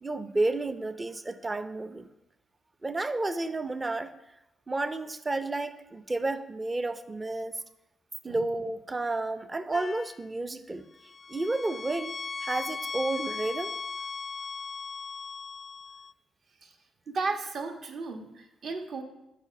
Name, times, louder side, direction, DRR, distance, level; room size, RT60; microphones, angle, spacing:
voice 1, 0.0-2.1 2.8-4.1 4.7-7.6 8.2-10.9 11.3-12.2 12.4-13.7, right 2 dB, 20° right, 11 dB, 0.6 m, -31 dB
sound 1, 9.7-10.3 11.0-16.1, left 4 dB, 35° left, 0.3 m, -38 dB
voice 2, 17.1-19.0, right 4 dB, 55° right, 4 dB, 1.3 m, -34 dB
9.9 x 5.2 x 6.8 m, 0.92 s
cardioid pair, 120°, 0 cm